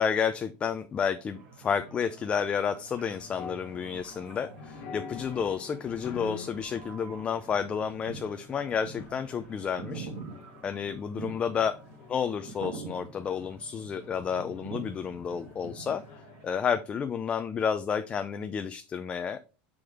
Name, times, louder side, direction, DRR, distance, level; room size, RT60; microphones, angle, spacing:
voice 1, 0.0-10.1 10.6-11.8 12.1-16.0 16.4-19.4, left 7 dB, 20° left, 9 dB, 0.4 m, -31 dB
sound 1, 1.3-16.5, right 4 dB, 65° right, 2.6 m, -46 dB
sound 2, 3.2-16.5, left 6 dB, 45° left, 1.2 m, -47 dB
6.1 x 5.0 x 3.6 m, 0.33 s
supercardioid pair, 150°, 5 cm